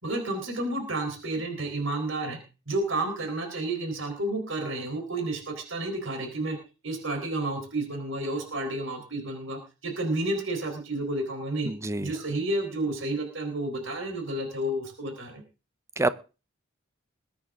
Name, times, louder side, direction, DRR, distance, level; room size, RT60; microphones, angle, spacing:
voice 1, 0.0-2.4 2.7-6.6 6.8-11.7 12.0-15.4, right 2 dB, 65° right, 4 dB, 4.2 m, -31 dB
voice 2, 11.6-12.1 16.0-16.1, right 2 dB, 15° right, 14 dB, 0.7 m, -26 dB
21.0 x 9.6 x 3.7 m, 0.33 s
head